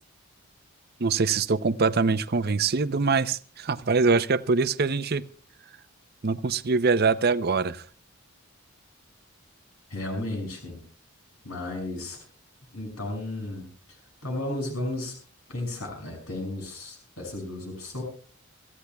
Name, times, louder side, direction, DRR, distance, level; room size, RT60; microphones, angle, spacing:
voice 1, 1.0-5.2 6.2-7.9 10.2-10.3, right 4 dB, 45° right, 13 dB, 0.6 m, -24 dB
voice 2, 9.9-10.8 11.4-12.2 12.7-13.7 14.2-15.2 15.5-18.0, left 1 dB, 85° left, 2 dB, 6.1 m, -33 dB
26.5 x 14.5 x 2.3 m, 0.41 s
head